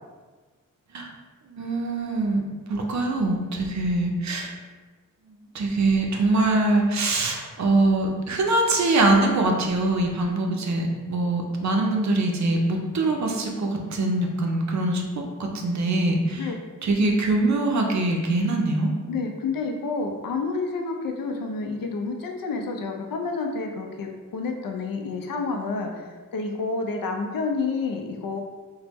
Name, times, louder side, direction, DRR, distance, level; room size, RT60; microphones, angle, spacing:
voice 1, 1.5-4.5 5.5-15.0 15.4-16.5 16.8-18.9, right 2 dB, 55° right, 1 dB, 0.5 m, -23 dB
voice 2, 19.1-28.4, left 4 dB, 80° left, 3 dB, 0.5 m, -29 dB
2.9 x 2.1 x 3.4 m, 1.4 s
wide cardioid pair, 135°, 33 cm